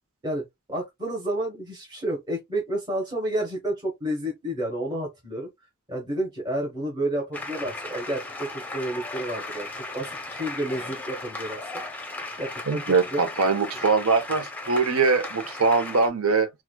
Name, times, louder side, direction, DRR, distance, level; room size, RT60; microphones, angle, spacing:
voice 1, 0.2-5.5 5.9-9.7 9.9-11.6 12.4-13.2, right 1 dB, 20° right, 1.2 m, -30 dB
sound 1, 7.3-16.1, left 2 dB, 10° left, 0.7 m, -36 dB
voice 2, 12.7-16.5, right 4 dB, 80° right, 0.8 m, -22 dB
4.7 x 2.3 x 2.2 m
head